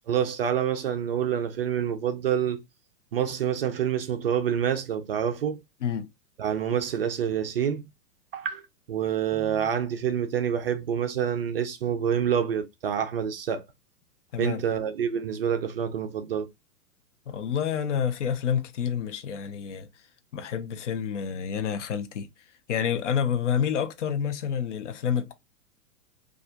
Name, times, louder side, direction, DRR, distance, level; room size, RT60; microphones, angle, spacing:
voice 1, 0.1-2.6 3.1-5.6 6.4-7.8 8.3-8.6 8.9-13.6 14.4-16.5, right 8 dB, 40° right, 0.4 m, -27 dB
voice 2, 17.3-19.9 20.3-22.3 22.7-25.3, left 8 dB, 50° left, 0.7 m, -28 dB
4.1 x 2.4 x 2.4 m
figure-of-eight pair, 110°, 46 cm